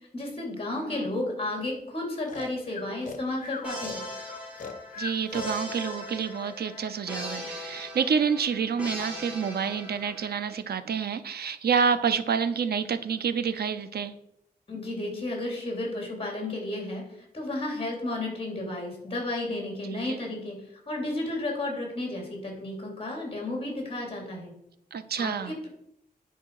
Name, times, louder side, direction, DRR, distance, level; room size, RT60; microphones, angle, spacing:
voice 1, 0.1-4.0 14.7-17.0 17.3-20.6 20.9-24.5 25.2-25.7, left 2 dB, 35° left, 0 dB, 3.0 m, -32 dB
Breathing, 2.3-6.0, left 5 dB, 55° left, 1.0 m, -39 dB
sound 1, 3.6-10.5, equal, 10° right, 2.4 m, -39 dB
voice 2, 5.0-14.1 20.1-20.2 24.9-25.5, right 6 dB, 90° right, 11 dB, 0.6 m, -28 dB
10.0 x 4.9 x 4.7 m, 0.78 s
wide cardioid pair, 130°, 16 cm